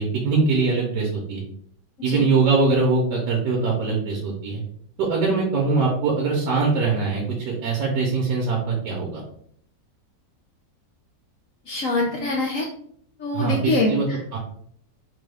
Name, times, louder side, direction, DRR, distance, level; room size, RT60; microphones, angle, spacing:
voice 1, 0.0-1.4 2.0-4.6 5.0-9.2 13.3-14.1 14.3-14.4, right 4 dB, 75° right, -2 dB, 1.3 m, -22 dB
voice 2, 11.7-12.7 13.2-14.2, left 2 dB, 75° left, 0 dB, 0.7 m, -24 dB
3.8 x 2.3 x 3.3 m, 0.64 s
omnidirectional pair, 1.9 m